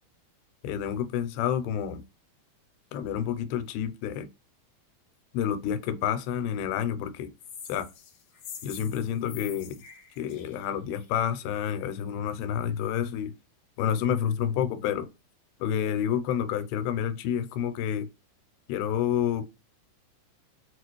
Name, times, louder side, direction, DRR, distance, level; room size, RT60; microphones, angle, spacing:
voice 1, 0.6-2.0 2.9-4.3 5.3-7.3 7.7-7.9 8.6-9.8 10.2-13.3 13.8-15.1 15.6-18.1 18.7-19.5, left 9 dB, 85° left, 2.5 m, -29 dB
sound 1, 7.4-11.2, left 7 dB, 70° left, 2.3 m, -45 dB
6.3 x 2.4 x 2.9 m
omnidirectional pair, 4.3 m